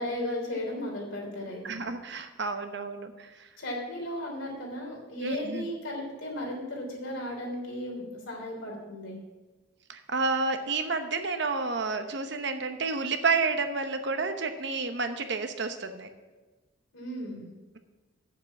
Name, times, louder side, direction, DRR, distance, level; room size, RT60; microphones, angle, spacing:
voice 1, 0.0-1.8 3.6-9.2 16.9-17.5, left 1 dB, 75° left, -1 dB, 3.4 m, -35 dB
voice 2, 1.6-3.3 5.2-5.7 9.9-16.1, right 4 dB, 55° right, 7 dB, 0.9 m, -30 dB
8.2 x 7.4 x 7.2 m, 1.2 s
head